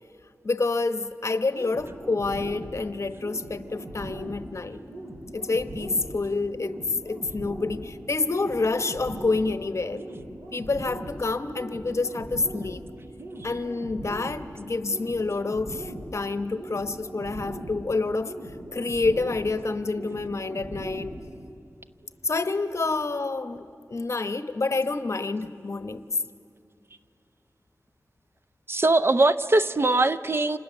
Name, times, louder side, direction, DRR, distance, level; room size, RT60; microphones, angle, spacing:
voice 1, 0.4-4.8 5.3-6.8 7.0-10.0 10.5-12.8 13.4-18.3 18.7-21.1 22.2-26.0, left 3 dB, 55° left, 10 dB, 1.1 m, -28 dB
sound 1, 1.5-21.5, right 1 dB, 75° right, 6.9 m, -40 dB
voice 2, 28.7-30.6, right 2 dB, 40° right, 13 dB, 0.6 m, -21 dB
30.0 x 27.0 x 7.1 m, 2.5 s
wide cardioid pair, 95°, 6 cm